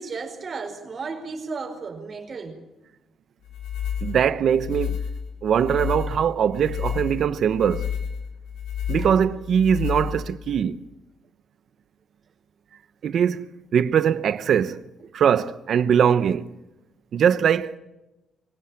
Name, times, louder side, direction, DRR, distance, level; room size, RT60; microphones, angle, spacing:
voice 1, 0.0-2.6 9.0-9.1, right 4 dB, 45° right, 5.1 m, -34 dB
Levitating FX, 3.5-10.6, left 8 dB, 85° left, 5.2 m, -30 dB
voice 2, 4.0-5.0 5.4-7.9 8.9-10.8 13.0-14.8 15.1-16.5 17.1-17.8, right 8 dB, 60° right, 0.9 m, -21 dB
24.5 x 17.5 x 8.8 m
cardioid pair, 90°, 0 cm